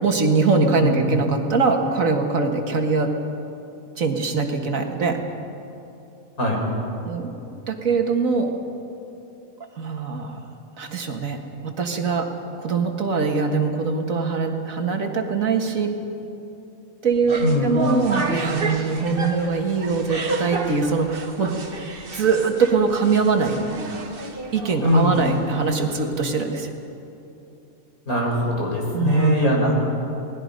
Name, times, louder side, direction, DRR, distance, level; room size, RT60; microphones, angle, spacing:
voice 1, 0.0-3.1 4.0-5.2 7.1-7.3 7.7-8.6 9.8-10.4 10.8-11.4 11.6-12.3 12.6-15.9 17.0-21.5 22.1-23.7 24.5-26.7 28.9-29.7, right 4 dB, 65° right, 4 dB, 2.1 m, -22 dB
sound 1, 17.1-26.2, right 3 dB, 40° right, 1.6 m, -32 dB
voice 2, 17.4-17.8 24.8-25.3 28.1-29.7, left 1 dB, 80° left, -1 dB, 4.9 m, -21 dB
29.0 x 19.5 x 5.3 m, 2.9 s
omnidirectional pair, 1.5 m